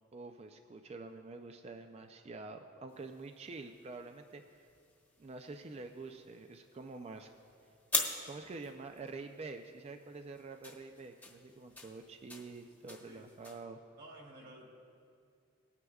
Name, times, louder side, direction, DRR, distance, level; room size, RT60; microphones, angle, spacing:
voice 1, 0.1-4.7 5.2-7.3 8.2-13.8, right 3 dB, 30° right, 6 dB, 0.4 m, -47 dB
sound 1, 2.9-13.6, left 3 dB, 10° left, 1.1 m, -44 dB
voice 2, 14.0-14.6, right 1 dB, 50° right, -2 dB, 2.4 m, -53 dB
20.0 x 9.6 x 2.3 m, 2.3 s
head